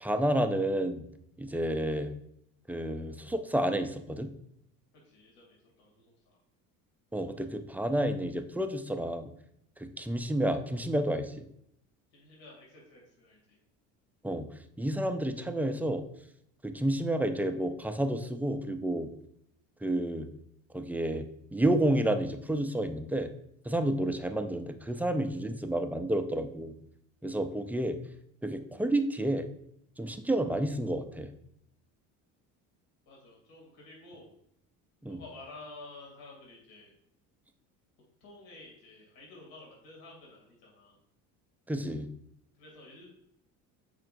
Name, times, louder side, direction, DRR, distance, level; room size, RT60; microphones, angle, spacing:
voice 1, 0.0-1.0 1.4-2.1 2.7-4.3 7.1-9.3 9.8-11.4 14.2-14.5 14.8-16.0 16.6-19.1 19.8-20.3 20.7-21.2 21.5-23.3 23.7-26.7 27.2-28.0 28.4-29.5 30.0-31.3 35.0-35.2 41.7-42.1, right 1 dB, 5° right, 8 dB, 0.3 m, -30 dB
voice 2, 5.0-6.4 12.1-13.6 33.0-34.3 35.1-36.9 38.2-41.0 42.6-43.1, left 2 dB, 70° left, -2 dB, 2.5 m, -51 dB
7.5 x 5.0 x 2.6 m, 0.73 s
supercardioid pair, 100°, 38 cm